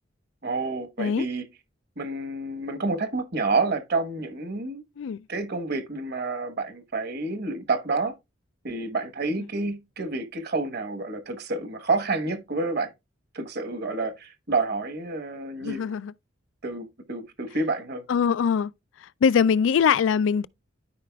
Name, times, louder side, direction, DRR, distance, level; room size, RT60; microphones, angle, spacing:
voice 1, 0.4-1.4 2.0-4.8 5.3-8.1 8.6-12.9 13.3-15.9 16.6-18.0, right 3 dB, 55° right, 1.1 m, -29 dB
voice 2, 15.6-16.1 18.1-18.7 19.2-20.5, left 7 dB, 75° left, 0.3 m, -22 dB
13.0 x 5.0 x 2.3 m
head